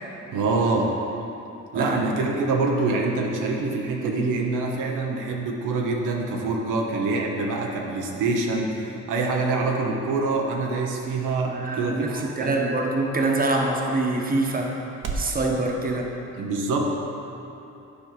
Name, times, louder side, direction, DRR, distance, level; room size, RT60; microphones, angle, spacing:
voice 1, 0.3-0.9 1.7-12.6 16.4-16.9, right 3 dB, 85° right, 0 dB, 1.0 m, -25 dB
voice 2, 1.7-2.2 11.5-14.7 15.1-16.1, right 2 dB, 30° right, 0 dB, 1.2 m, -25 dB
sound 1, 9.1-15.4, right 3 dB, 60° right, 1.0 m, -41 dB
9.9 x 4.5 x 5.8 m, 2.9 s
cardioid pair, 90°, 30 cm